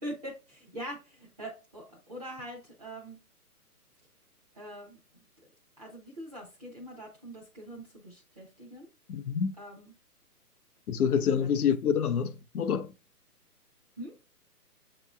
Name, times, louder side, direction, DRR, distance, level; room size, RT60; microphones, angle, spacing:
voice 1, 0.0-3.2 4.5-5.2 5.8-8.9 9.6-9.9 11.4-11.5 14.0-14.2, right 1 dB, 25° right, 0.8 m, -43 dB
voice 2, 9.1-9.6 10.9-12.9, left 7 dB, 70° left, 0.7 m, -27 dB
7.3 x 2.9 x 2.4 m
hypercardioid pair, 165°, 47 cm